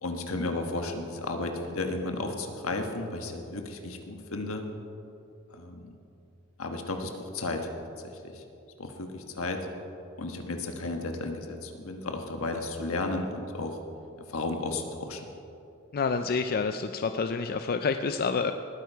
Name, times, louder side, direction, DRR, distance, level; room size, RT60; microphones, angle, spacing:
voice 1, 0.0-4.6 5.5-5.9 6.6-7.7 8.2-8.4 8.8-9.7 10.2-13.8 14.3-15.2, left 2 dB, 75° left, 4 dB, 1.4 m, -33 dB
voice 2, 15.9-18.5, left 5 dB, 45° left, 8 dB, 0.4 m, -28 dB
19.5 x 9.2 x 4.6 m, 2.8 s
head